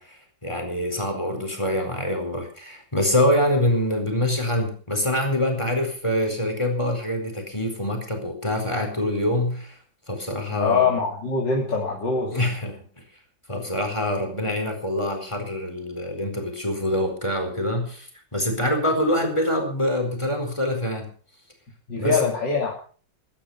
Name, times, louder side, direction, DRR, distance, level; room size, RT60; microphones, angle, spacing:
voice 1, 0.0-9.8 10.1-10.9 12.3-12.8 13.5-21.1 21.9-22.3, left 1 dB, 15° left, 4 dB, 4.5 m, -25 dB
voice 2, 10.5-12.4 21.9-22.7, left 4 dB, 75° left, -2 dB, 3.5 m, -23 dB
17.0 x 12.5 x 5.7 m, 0.43 s
omnidirectional pair, 1.9 m